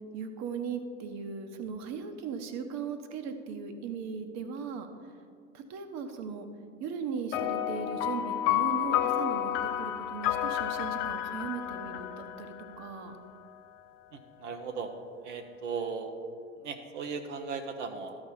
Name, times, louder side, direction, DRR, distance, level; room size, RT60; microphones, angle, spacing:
voice 1, 0.1-5.1 5.5-6.5 6.8-13.1, right 5 dB, 45° right, 7 dB, 1.1 m, -38 dB
sound 1, 7.3-13.1, left 11 dB, 50° left, 0.6 m, -31 dB
voice 2, 14.1-14.9 15.2-16.1 16.6-18.2, right 5 dB, 70° right, 4 dB, 0.9 m, -37 dB
13.0 x 5.0 x 5.5 m, 2.2 s
figure-of-eight pair, 80°, 38 cm